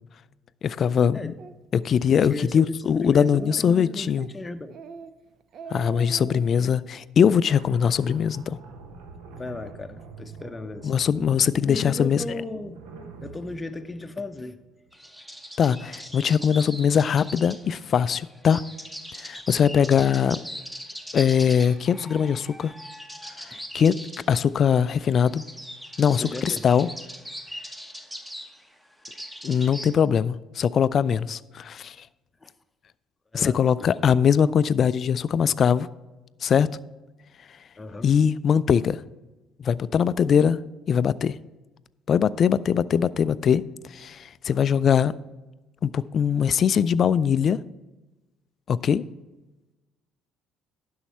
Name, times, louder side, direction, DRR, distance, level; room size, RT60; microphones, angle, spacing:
voice 1, 0.6-1.3 1.7-4.3 5.7-8.6 10.8-12.2 15.6-18.6 19.1-20.4 21.1-22.7 23.4-24.0 24.3-25.4 26.0-26.9 29.4-32.1 33.3-35.9 36.4-36.7 38.0-39.0 39.6-40.6 40.9-41.4 42.1-43.6 43.9-45.1 45.8-47.6 48.7-49.0, left 7 dB, 45° left, 18 dB, 0.3 m, -21 dB
Speech, 1.4-1.5 2.0-2.3 2.7-2.8 3.1-3.7 4.2-4.3 4.7-5.1 5.4-6.4, right 6 dB, 55° right, 0.6 m, -42 dB
voice 2, 2.1-4.8 9.3-10.9 11.7-12.8 13.2-14.6 19.8-20.0 23.5-23.6 26.1-26.7 32.4-32.5 33.3-33.6 34.1-34.2 37.8-38.1, left 2 dB, 20° left, 7 dB, 0.7 m, -36 dB
sound 1, 7.5-14.9, right 4 dB, 70° right, 1.0 m, -45 dB
sound 2, 14.9-29.9, equal, 5° right, 1.1 m, -40 dB
11.0 x 6.4 x 4.4 m, 1.1 s
hypercardioid pair, 55°, 0 cm